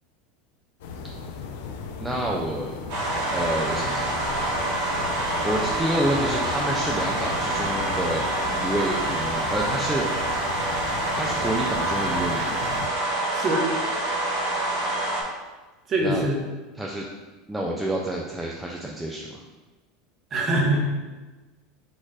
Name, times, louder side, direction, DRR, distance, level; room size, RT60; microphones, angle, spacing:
sound 1, 0.8-12.9, left 4 dB, 75° left, 0.5 m, -36 dB
voice 1, 2.0-2.8 3.3-4.4 5.4-10.3 11.1-12.9 16.0-16.3 16.8-17.1 17.5-19.4, right 1 dB, 5° right, -3 dB, 0.3 m, -29 dB
sound 2, 2.9-15.2, right 2 dB, 55° right, 1.3 m, -27 dB
voice 2, 13.3-13.7 15.9-16.4 20.3-20.8, right 1 dB, 25° right, -1 dB, 0.7 m, -23 dB
4.3 x 2.4 x 4.7 m, 1.2 s
supercardioid pair, 170°, 0 cm